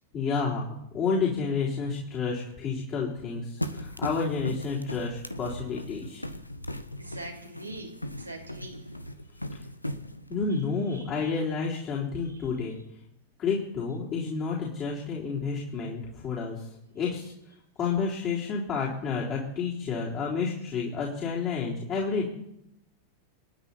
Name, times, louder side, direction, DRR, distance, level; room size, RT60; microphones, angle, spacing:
voice 1, 0.1-6.2 9.5-9.6 10.3-12.8 13.4-17.3 17.8-22.3, left 5 dB, 35° left, -5 dB, 3.9 m, -30 dB
sound 1, 3.6-10.4, left 1 dB, 85° left, 0.9 m, -37 dB
voice 2, 7.0-8.8 10.9-11.3, right 1 dB, 90° right, -1 dB, 3.2 m, -43 dB
27.0 x 9.3 x 4.3 m, 0.81 s
figure-of-eight pair, 90°, 0 cm